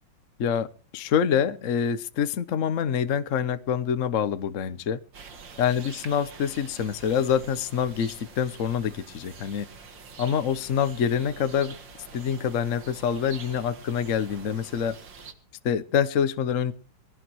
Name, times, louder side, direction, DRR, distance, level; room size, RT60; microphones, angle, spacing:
voice 1, 0.9-5.0 5.6-9.7 10.2-11.7 12.1-15.0 15.6-16.7, left 8 dB, 50° left, 1.0 m, -26 dB
sound 1, 5.1-15.3, right 5 dB, 65° right, 2.6 m, -46 dB
21.0 x 17.0 x 3.1 m
omnidirectional pair, 2.2 m